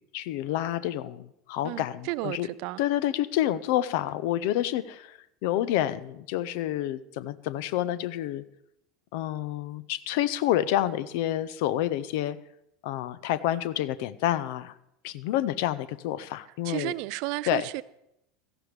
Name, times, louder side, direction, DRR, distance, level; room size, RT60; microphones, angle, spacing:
voice 1, 0.1-2.5 2.8-8.4 9.1-12.4 12.8-14.7 15.0-16.9 17.5-17.6, left 13 dB, 55° left, 0.6 m, -28 dB
voice 2, 1.6-2.8 16.6-17.8, right 20 dB, 55° right, 0.4 m, -33 dB
17.0 x 14.0 x 3.3 m
figure-of-eight pair, 75°, 0 cm